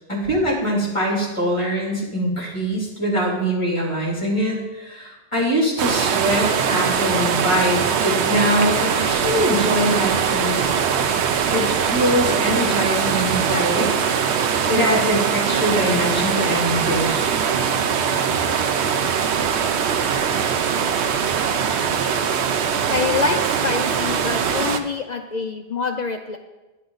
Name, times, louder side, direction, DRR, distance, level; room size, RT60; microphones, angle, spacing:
voice 1, 0.1-10.5 11.5-13.9 14.7-17.3, equal, 30° left, -3 dB, 2.8 m, -23 dB
sound 1, 5.8-24.8, right 7 dB, 90° right, 0.9 m, -21 dB
voice 2, 22.9-26.4, left 5 dB, 50° left, 5 dB, 0.6 m, -26 dB
10.0 x 9.3 x 3.9 m, 1.1 s
omnidirectional pair, 1.1 m